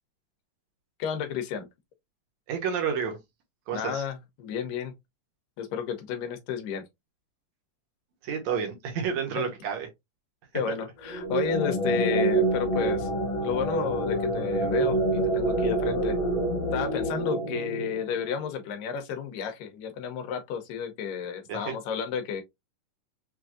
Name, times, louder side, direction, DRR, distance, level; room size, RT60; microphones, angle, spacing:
voice 1, 1.0-1.7 3.7-4.9 5.6-6.8 9.3-9.5 10.5-13.1 13.4-16.2 16.7-22.4, left 7 dB, 90° left, 2.5 m, -32 dB
voice 2, 2.5-3.2 3.7-4.0 8.2-9.9 10.7-10.8 21.5-21.7, right 7 dB, 70° right, 1.9 m, -30 dB
sound 1, 11.0-18.5, right 2 dB, 50° left, 2.0 m, -27 dB
6.0 x 2.6 x 2.4 m
omnidirectional pair, 3.8 m